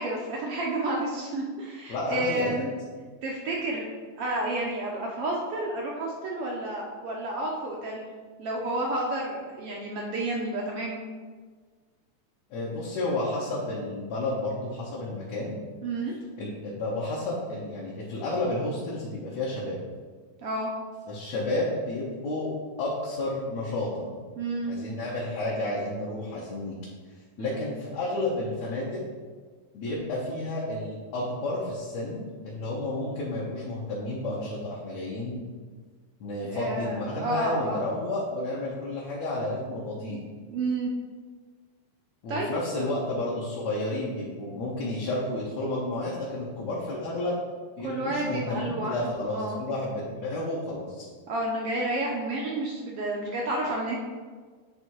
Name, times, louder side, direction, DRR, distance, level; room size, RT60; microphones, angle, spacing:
voice 1, 0.0-2.7 3.2-3.9 4.2-8.1 8.4-11.0 15.8-16.1 20.4-20.7 24.4-24.7 27.4-27.6 36.4-37.9 40.5-40.9 42.3-42.5 47.8-49.6 51.3-54.0, right 2 dB, 70° right, -2 dB, 1.5 m, -30 dB
voice 2, 1.9-2.6 12.5-15.6 16.4-19.8 21.1-22.5 22.8-24.2 24.7-26.8 27.4-29.0 29.7-35.4 36.2-40.2 42.2-47.4 47.8-51.1, left 2 dB, 70° left, -6 dB, 2.2 m, -31 dB
9.5 x 3.4 x 4.6 m, 1.5 s
omnidirectional pair, 3.4 m